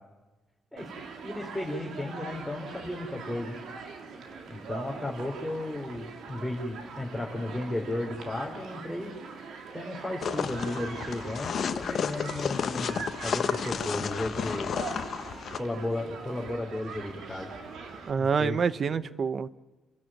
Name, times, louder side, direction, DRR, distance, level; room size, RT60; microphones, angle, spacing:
Human group actions, 0.8-18.1, right 4 dB, 70° right, 3.2 m, -42 dB
voice 1, 1.2-3.6 4.5-9.1 9.7-14.8 15.6-17.5 18.2-19.0, left 1 dB, 5° left, -3 dB, 4.1 m, -34 dB
sound 1, 10.2-15.6, left 7 dB, 55° left, 1.1 m, -32 dB
voice 2, 18.1-19.5, right 6 dB, 50° right, 17 dB, 0.8 m, -27 dB
30.0 x 13.5 x 9.2 m, 1.1 s
cardioid pair, 90°, 0 cm